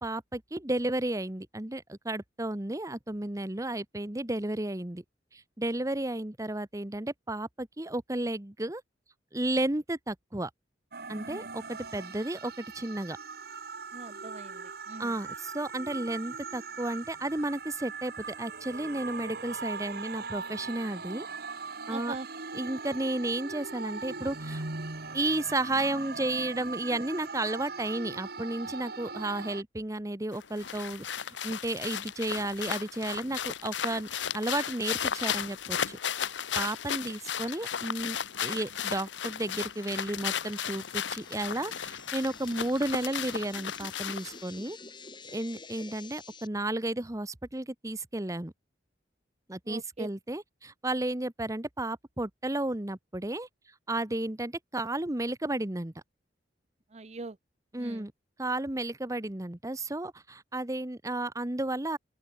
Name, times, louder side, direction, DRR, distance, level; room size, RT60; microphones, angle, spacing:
voice 1, 0.0-5.0 5.3-8.8 9.3-10.5 11.1-13.2 15.0-21.3 21.9-22.1 22.5-24.6 25.1-34.1 34.3-44.8 45.3-48.5 49.5-53.5 53.9-55.9 57.7-58.1 58.4-62.0, right 1 dB, 20° right, 1.1 m, -33 dB
sound 1, 10.9-29.6, right 4 dB, 60° right, 2.4 m, -40 dB
voice 2, 13.9-15.1 21.9-22.3 49.7-50.1 56.9-57.4 57.8-58.1, right 3 dB, 40° right, 0.7 m, -42 dB
sound 2, 30.3-44.4, left 8 dB, 90° left, 1.1 m, -35 dB
sound 3, 38.9-46.5, left 4 dB, 25° left, 6.2 m, -50 dB
open air
head